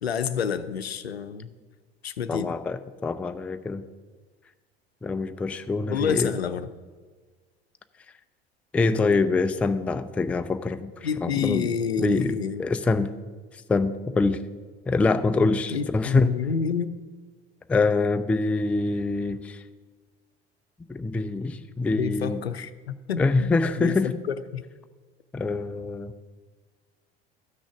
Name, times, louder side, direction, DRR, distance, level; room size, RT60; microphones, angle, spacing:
voice 1, 0.0-1.5 2.0-2.5 5.9-6.7 11.0-12.7 15.7-16.9 22.0-23.5 23.8-24.7, left 7 dB, 80° left, 11 dB, 0.6 m, -29 dB
voice 2, 2.3-3.8 5.0-6.3 8.7-10.9 11.2-11.7 12.0-13.1 13.5-14.4 14.9-16.4 17.7-19.6 20.9-22.4 23.2-24.2 25.3-26.1, left 3 dB, 5° left, 10 dB, 0.3 m, -25 dB
13.0 x 6.3 x 5.8 m, 1.4 s
figure-of-eight pair, 70°, 31 cm